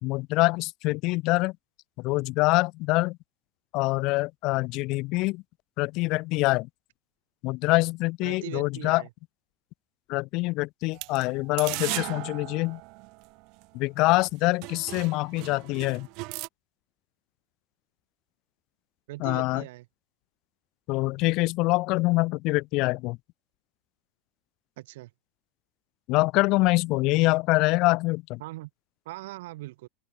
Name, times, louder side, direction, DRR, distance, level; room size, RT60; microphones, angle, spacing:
voice 1, 0.0-1.5 2.0-3.2 3.7-5.4 5.8-6.7 7.4-9.0 10.1-12.8 13.7-16.1 19.2-19.6 20.9-23.2 26.1-28.4, left 22 dB, 45° left, 1.3 m, -25 dB
voice 2, 8.2-9.1 19.1-19.9 24.8-25.1 28.4-28.7 29.0-29.9, right 18 dB, 70° right, 2.5 m, -40 dB
sound 1, 10.9-13.6 14.2-14.3 14.6-16.5, right 28 dB, 45° right, 3.8 m, -37 dB
open air
supercardioid pair, 165°, 0 cm